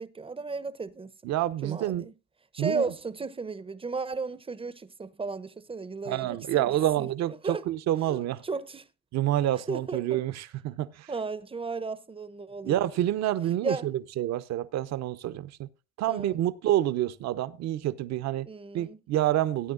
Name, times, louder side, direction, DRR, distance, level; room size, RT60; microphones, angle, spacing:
voice 1, 0.0-1.1 1.6-2.1 2.5-6.7 7.0-7.6 8.0-8.9 9.7-10.2 11.1-12.9 13.6-13.9 16.1-16.4 18.4-19.0, right 4 dB, 15° right, 0.8 m, -35 dB
voice 2, 1.2-2.1 2.6-2.9 6.1-8.4 9.1-11.1 12.6-15.7 16.0-18.5 18.7-19.7, right 13 dB, 55° right, 0.9 m, -28 dB
17.5 x 9.3 x 2.5 m
hypercardioid pair, 80°, 33 cm